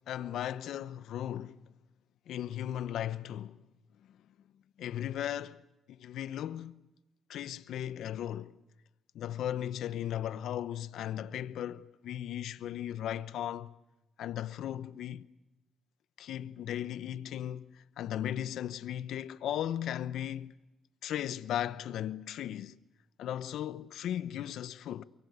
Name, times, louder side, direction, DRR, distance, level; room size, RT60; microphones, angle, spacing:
voice 1, 0.1-1.6 2.3-3.6 4.8-5.6 6.0-6.8 7.3-8.5 9.1-13.7 14.2-15.3 16.2-20.5 21.0-22.8 23.2-25.0, left 11 dB, 75° left, 0.9 m, -36 dB
24.0 x 23.5 x 8.1 m
cardioid pair, 90°, 0 cm